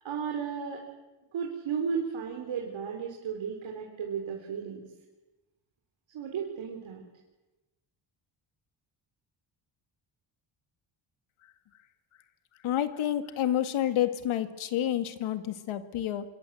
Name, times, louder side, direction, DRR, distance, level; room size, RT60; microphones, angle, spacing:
voice 1, 0.0-0.8 1.3-4.8 6.1-7.0, right 6 dB, 70° right, 1 dB, 4.3 m, -34 dB
voice 2, 12.6-16.2, left 11 dB, 85° left, 10 dB, 2.1 m, -29 dB
26.0 x 23.5 x 7.8 m, 1.1 s
cardioid pair, 130°, 48 cm